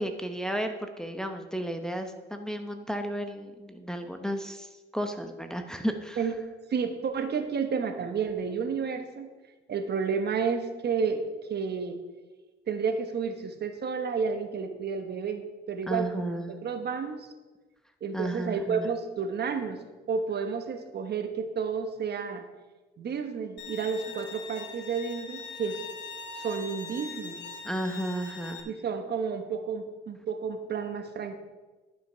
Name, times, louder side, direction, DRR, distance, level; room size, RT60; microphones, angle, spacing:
voice 1, 0.0-6.2 15.9-16.6 18.1-18.9 27.6-28.7, equal, 5° left, 5 dB, 0.9 m, -33 dB
voice 2, 6.7-9.3 9.7-11.2 11.5-12.0 12.7-17.3 18.0-19.8 20.1-22.4 23.0-25.8 26.3-27.4 28.6-31.4, right 6 dB, 55° right, 7 dB, 1.2 m, -31 dB
Bowed string instrument, 23.6-28.6, left 4 dB, 60° left, 1.7 m, -42 dB
11.0 x 6.2 x 5.6 m, 1.2 s
cardioid pair, 90°, 20 cm